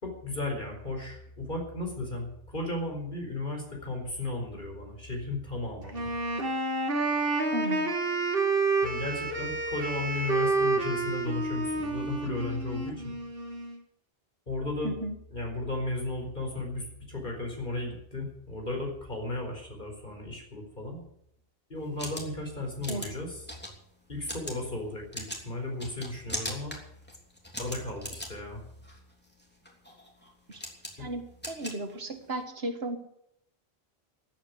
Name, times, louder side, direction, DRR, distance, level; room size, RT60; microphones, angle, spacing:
voice 1, 0.0-6.1 8.8-13.1 14.5-14.9 15.3-21.1 21.7-23.5 24.1-26.8 27.6-28.6 31.0-31.1, left 2 dB, 50° left, 1 dB, 4.9 m, -35 dB
Wind instrument woodwind instrument, 5.9-13.8, right 3 dB, 65° right, 2.0 m, -29 dB
voice 2, 7.5-7.9 14.8-15.2 22.9-23.1 30.5-30.6 31.0-33.0, right 1 dB, 80° right, 7 dB, 2.0 m, -34 dB
sound 1, 21.8-32.4, equal, 10° left, 3.2 m, -41 dB
14.0 x 9.0 x 9.6 m, 0.74 s
omnidirectional pair, 1.0 m